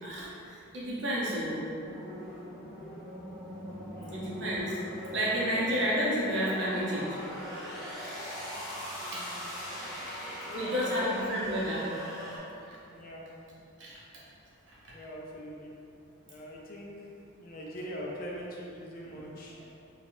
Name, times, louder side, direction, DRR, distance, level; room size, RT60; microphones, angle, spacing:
voice 1, 0.0-1.6 4.1-4.8 5.1-7.2 9.1-9.2 10.5-11.8 12.7-12.8 13.8-14.0, equal, 60° right, -7 dB, 0.8 m, -31 dB
sound 1, 1.8-12.4, equal, ahead, 0.6 m, -40 dB
voice 2, 4.0-4.3 9.0-9.5 10.3-11.3 12.9-13.2 14.9-15.7 16.3-17.1 17.4-19.6, equal, 45° left, -2 dB, 0.4 m, -42 dB
3.3 x 2.3 x 2.6 m, 2.7 s
head